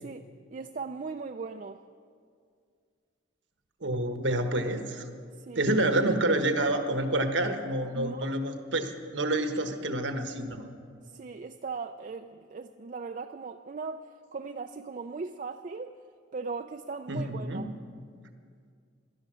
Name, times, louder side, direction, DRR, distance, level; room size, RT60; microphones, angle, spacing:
voice 1, 0.5-1.8 5.4-5.7 7.9-8.3 11.1-16.0 16.3-17.7, right 4 dB, 40° right, 7 dB, 0.4 m, -38 dB
voice 2, 3.8-5.1 5.5-10.7 17.1-17.7, right 1 dB, 75° right, 6 dB, 1.3 m, -28 dB
17.0 x 12.5 x 6.3 m, 2.2 s
head